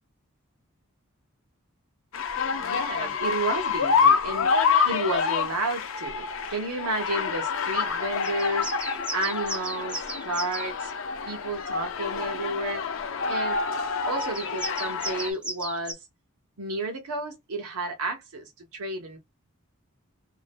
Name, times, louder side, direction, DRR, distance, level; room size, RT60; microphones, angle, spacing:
sound 1, 2.1-15.3, left 5 dB, 60° left, 0.5 m, -27 dB
voice 1, 2.6-4.5 4.9-6.2 6.5-8.7 9.1-10.9 11.3-12.8 13.3-13.6 14.1-16.1 16.6-19.2, right 2 dB, 90° right, 0.7 m, -31 dB
sound 2, 8.2-10.7 14.2-15.9, right 1 dB, 5° right, 0.4 m, -36 dB
2.6 x 2.1 x 3.3 m
head